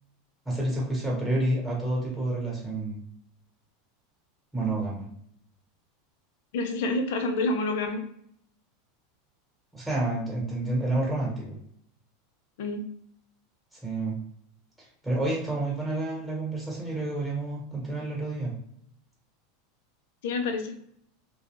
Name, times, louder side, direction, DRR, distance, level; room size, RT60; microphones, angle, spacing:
voice 1, 0.4-3.0 4.5-5.0 9.7-11.6 13.7-14.1 14.8-18.5, right 2 dB, ahead, -4 dB, 1.2 m, -29 dB
voice 2, 6.5-8.0 12.6-12.9 20.2-20.7, left 2 dB, 70° left, 7 dB, 0.5 m, -28 dB
2.3 x 2.2 x 3.1 m, 0.71 s
hypercardioid pair, 100°, 0 cm